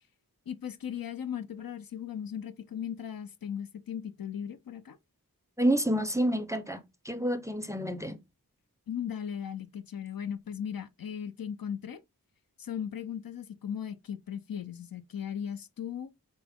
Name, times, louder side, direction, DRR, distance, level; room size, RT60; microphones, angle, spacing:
voice 1, 0.5-5.0 8.9-12.0 12.6-16.1, left 8 dB, 70° left, 0.5 m, -37 dB
voice 2, 5.6-8.2, right 1 dB, 10° right, 0.5 m, -29 dB
4.5 x 2.0 x 3.4 m
wide cardioid pair, 55°, 36 cm